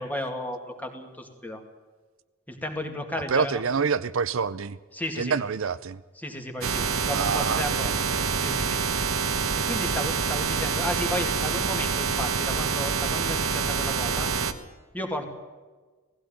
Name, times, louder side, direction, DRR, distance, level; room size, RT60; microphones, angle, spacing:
voice 1, 0.0-1.6 2.5-3.6 4.9-5.4 6.2-7.9 8.4-8.8 9.6-14.3 14.9-15.3, left 1 dB, 10° left, 4 dB, 2.3 m, -33 dB
voice 2, 3.3-4.8 5.2-6.0 7.1-8.7, right 5 dB, 70° right, 15 dB, 0.6 m, -28 dB
sound 1, 6.6-14.5, right 5 dB, 90° right, 1.3 m, -26 dB
18.5 x 15.5 x 9.0 m, 1.3 s
head